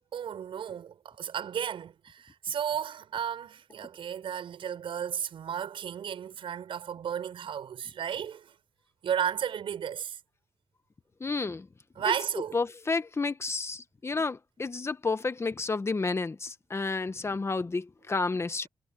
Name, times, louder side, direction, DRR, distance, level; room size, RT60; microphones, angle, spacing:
voice 1, 0.1-8.5 9.0-10.2 12.0-12.6 16.8-17.0, right 8 dB, 85° right, 6.9 m, -34 dB
voice 2, 11.2-11.6 12.5-18.7, left 3 dB, 30° left, 1.3 m, -31 dB
cardioid pair, 95°, 9 cm